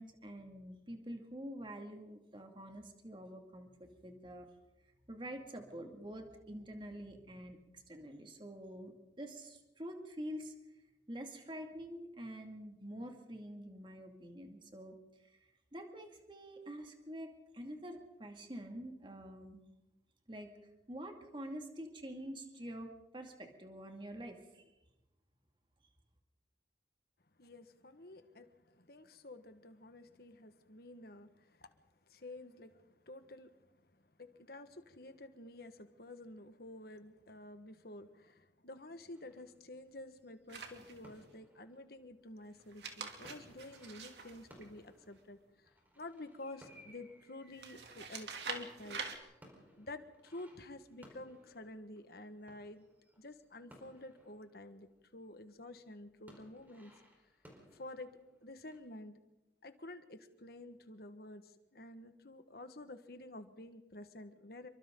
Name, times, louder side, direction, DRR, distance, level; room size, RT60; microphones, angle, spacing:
voice 1, 0.0-4.5 5.1-8.9 9.2-10.5 11.1-15.0 15.2-15.4 15.7-19.6 20.3-20.5 20.9-24.6, equal, 30° right, 3 dB, 2.4 m, -47 dB
voice 2, 27.4-31.7 32.1-49.0 49.8-52.8 53.2-56.9 57.7-59.2 59.6-64.7, left 2 dB, 60° left, 8 dB, 1.6 m, -50 dB
sound 1, 39.1-55.3 55.6-58.8, equal, 10° right, 4.6 m, -63 dB
sound 2, 40.5-41.2 42.6-45.2 47.6-49.2, right 5 dB, 75° right, 2.8 m, -45 dB
28.0 x 23.5 x 3.9 m, 0.98 s
head